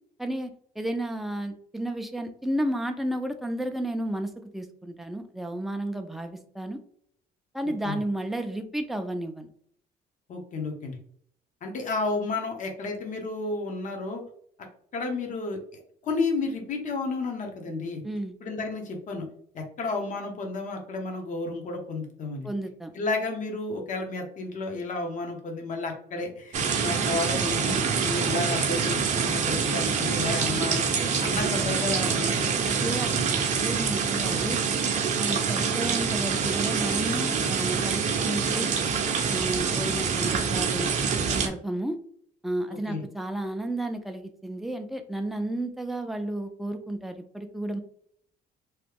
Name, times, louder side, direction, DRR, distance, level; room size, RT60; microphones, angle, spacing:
voice 1, 0.2-0.5 0.8-6.8 7.5-9.5 18.0-18.3 22.4-22.9 32.7-34.6 35.2-38.7 39.3-40.9 41.3-42.0 42.4-47.8, right 1 dB, ahead, 6 dB, 0.4 m, -32 dB
voice 2, 7.6-8.0 10.3-11.0 11.6-14.2 14.9-15.6 16.0-18.0 18.4-19.3 19.5-22.5 22.9-32.6 42.7-43.0, left 3 dB, 50° left, 2 dB, 0.9 m, -32 dB
sound 1, 26.5-41.5, right 6 dB, 45° right, 0.6 m, -26 dB
3.0 x 2.3 x 3.4 m, 0.62 s
cardioid pair, 110°, 17 cm